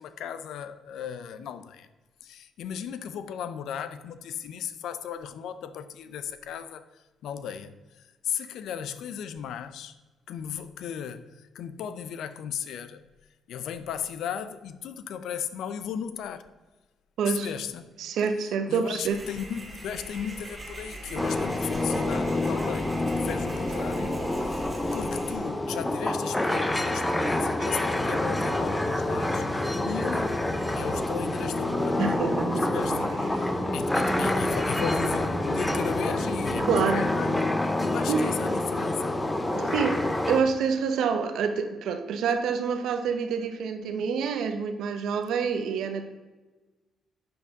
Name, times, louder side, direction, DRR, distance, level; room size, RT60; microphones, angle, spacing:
voice 1, 0.0-1.9 2.2-6.9 7.2-10.0 10.3-13.0 13.5-16.5 17.3-17.9 18.7-24.2 24.5-24.6 24.9-30.5 30.7-32.2 32.7-37.5 37.8-39.2, left 8 dB, 80° left, 0.5 m, -36 dB
voice 2, 18.0-19.2 32.0-32.7 36.7-37.0 38.1-38.2 39.5-40.0 40.3-46.0, right 6 dB, 75° right, 0.9 m, -27 dB
sound 1, 19.0-25.4, right 1 dB, 20° right, 2.2 m, -41 dB
sound 2, 21.2-40.4, left 1 dB, 10° left, 0.7 m, -27 dB
sound 3, 27.8-37.4, right 1 dB, 45° right, 2.0 m, -37 dB
7.8 x 6.5 x 3.6 m
cardioid pair, 90°, 0 cm